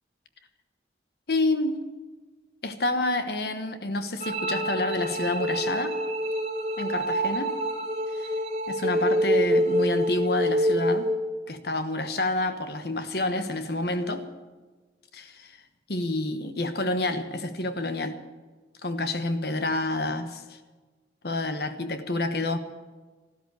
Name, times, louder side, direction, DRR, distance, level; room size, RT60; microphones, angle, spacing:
voice 1, 1.3-1.9 2.6-6.0 6.8-7.6 8.1-8.3 8.7-11.1 11.5-14.3 15.1-15.6 15.9-18.2 18.8-20.6 21.2-22.6, left 2 dB, 60° left, 9 dB, 1.2 m, -28 dB
sound 1, 4.2-11.2, equal, 40° right, 2.2 m, -26 dB
13.5 x 13.0 x 8.2 m, 1.3 s
head